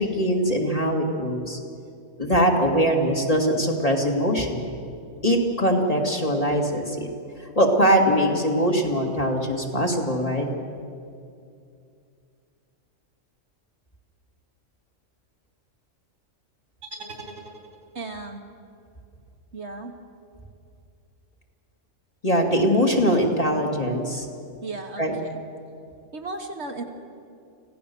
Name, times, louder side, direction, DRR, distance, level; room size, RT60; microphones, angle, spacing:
voice 1, 0.0-1.6 2.2-4.7 5.2-7.1 7.6-10.5 22.2-24.3 25.0-25.1, equal, 30° left, 0 dB, 2.3 m, -22 dB
sound 1, 16.8-18.1, right 2 dB, 80° right, 3.6 m, -41 dB
voice 2, 18.0-18.4 19.5-19.9 24.6-25.4 26.1-26.8, right 3 dB, 60° right, 3 dB, 1.8 m, -35 dB
26.0 x 16.5 x 7.0 m, 2.5 s
omnidirectional pair, 1.3 m